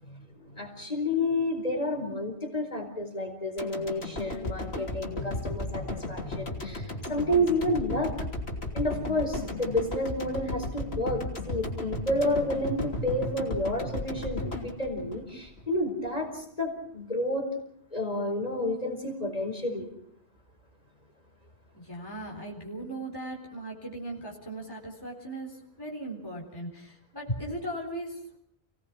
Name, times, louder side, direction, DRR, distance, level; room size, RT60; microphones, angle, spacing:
voice 1, 0.1-8.2 8.7-17.5 17.9-19.9, left 1 dB, 35° left, 3 dB, 4.5 m, -30 dB
sound 1, 3.6-15.8 16.2-16.3, left 2 dB, 70° left, 3.4 m, -35 dB
voice 2, 21.7-28.4, right 1 dB, 20° left, -1 dB, 4.0 m, -38 dB
29.0 x 18.5 x 6.1 m, 0.68 s
omnidirectional pair, 1.1 m